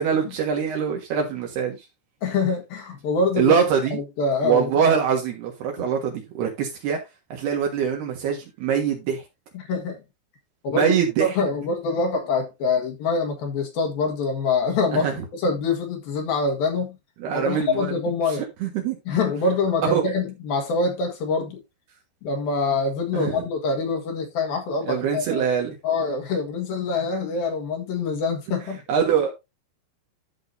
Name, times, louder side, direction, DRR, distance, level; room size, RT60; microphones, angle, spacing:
voice 1, 0.0-1.8 3.4-4.0 4.4-7.0 7.3-9.2 10.7-11.3 14.9-15.2 17.2-18.0 18.6-19.0 19.8-19.9 23.1-23.3 24.8-25.8 28.9-29.3, right 7 dB, 70° right, 3.4 m, -23 dB
voice 2, 2.2-3.6 3.9-4.7 9.5-10.0 10.6-17.0 17.3-18.5 19.1-21.6 22.2-25.5 25.8-28.8, left 4 dB, 60° left, 3.2 m, -25 dB
13.0 x 6.2 x 2.7 m
omnidirectional pair, 5.1 m